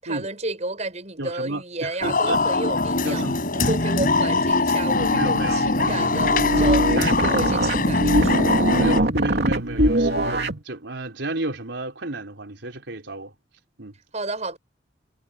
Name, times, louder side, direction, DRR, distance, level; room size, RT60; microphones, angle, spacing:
voice 1, 0.0-3.3 3.5-8.5 14.1-14.6, right 2 dB, 40° right, 7.0 m, -31 dB
voice 2, 1.2-2.4 3.0-3.7 5.0-6.1 6.6-7.1 8.8-13.3 13.8-13.9, right 2 dB, 80° right, 4.0 m, -32 dB
sound 1, 2.0-9.0, left 3 dB, 50° left, 4.5 m, -22 dB
sound 2, 4.9-10.6, right 1 dB, 65° right, 2.8 m, -23 dB
head